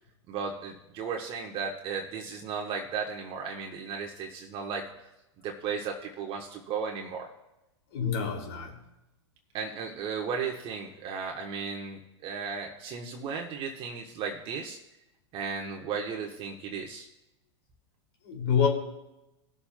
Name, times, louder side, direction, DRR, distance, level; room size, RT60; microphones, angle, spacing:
voice 1, 0.3-4.9 5.4-7.3 9.5-14.8 15.3-17.1, right 5 dB, 35° right, 1 dB, 1.3 m, -35 dB
voice 2, 7.9-8.8 18.2-18.7, left 7 dB, 65° left, 1 dB, 2.7 m, -27 dB
19.0 x 7.0 x 2.3 m, 0.93 s
hypercardioid pair, 105°, 15 cm